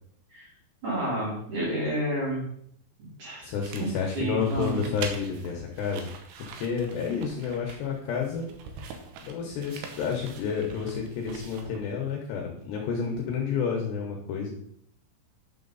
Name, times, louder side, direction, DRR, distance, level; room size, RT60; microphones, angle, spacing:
voice 1, 0.8-2.4 3.0-3.5 3.8-3.9 4.1-4.9, right 1 dB, 40° right, -6 dB, 4.6 m, -30 dB
voice 2, 3.4-6.1 6.4-8.5 8.9-14.5, left 6 dB, 75° left, 0 dB, 2.8 m, -30 dB
sound 1, 3.6-12.0, right 5 dB, 75° right, 3.1 m, -44 dB
10.0 x 6.6 x 4.0 m, 0.69 s
omnidirectional pair, 5.8 m